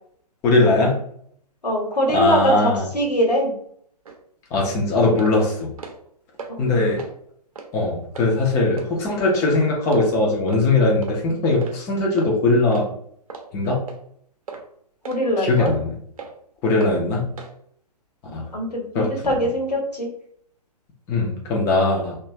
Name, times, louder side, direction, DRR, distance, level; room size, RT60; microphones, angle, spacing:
voice 1, 0.4-1.0 2.1-2.9 4.5-5.7 6.6-7.0 7.7-12.9 13.5-13.8 15.4-15.9 16.6-17.2 18.3-18.5 18.9-19.3 21.1-22.2, left 2 dB, 15° left, -2 dB, 0.4 m, -20 dB
voice 2, 1.6-3.5 6.5-6.7 15.0-15.7 16.7-17.0 18.2-20.1, equal, 80° left, 1 dB, 1.0 m, -23 dB
sound 1, 4.0-4.2 4.6-4.8 5.2-5.4 5.7-6.1 6.4-6.5 7.0-7.1 7.6-7.7 8.1-8.3 8.8-8.9 9.3-9.5 9.9-10.0 10.5-10.6 11.0-11.2 11.6-11.8 12.2-12.3 12.7-12.9 13.3-13.5 13.9-14.0 14.5-14.6 15.0-15.2 15.6-15.8 16.2-16.3 16.8-16.9 17.4-17.5, right 5 dB, 60° right, 0.6 m, -36 dB
2.9 x 2.3 x 2.7 m, 0.65 s
figure-of-eight pair, 125°, 21 cm